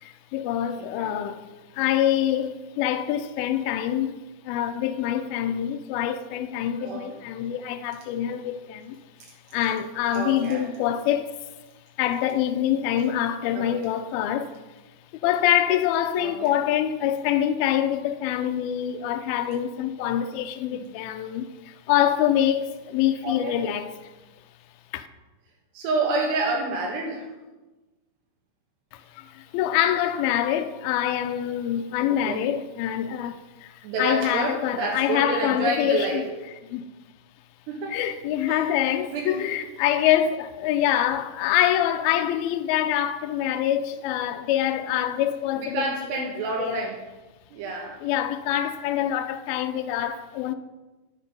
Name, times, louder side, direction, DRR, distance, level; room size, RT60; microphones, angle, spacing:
voice 1, 0.0-4.2 4.5-9.0 9.5-11.3 12.0-14.5 15.1-24.1 24.9-25.1 28.9-36.2 36.7-36.9 37.9-45.8 46.6-46.9 48.0-50.5, left 11 dB, 80° left, 2.2 m, -25 dB
voice 2, 0.8-1.1 6.8-7.2 9.2-9.3 10.1-10.7 13.5-13.8 16.2-16.5 20.7-20.9 23.2-23.6 25.7-27.3 32.1-32.5 33.8-36.3 37.7-38.0 38.5-39.4 45.6-47.0 47.5-48.0, right 3 dB, 80° right, 3.4 m, -29 dB
10.5 x 8.1 x 5.3 m
omnidirectional pair, 4.8 m